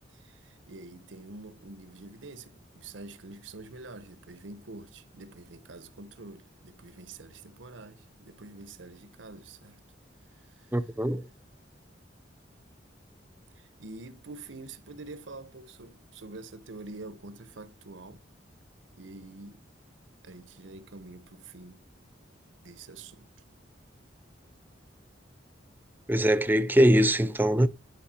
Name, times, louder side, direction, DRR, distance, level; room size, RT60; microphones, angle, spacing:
voice 1, 0.1-9.8 10.4-10.7 13.5-18.2 19.0-19.6 20.2-21.8 22.6-23.3, right 2 dB, 90° right, 1.0 m, -46 dB
voice 2, 10.7-11.3 26.1-27.7, equal, 10° right, 0.5 m, -22 dB
10.5 x 5.3 x 4.3 m
head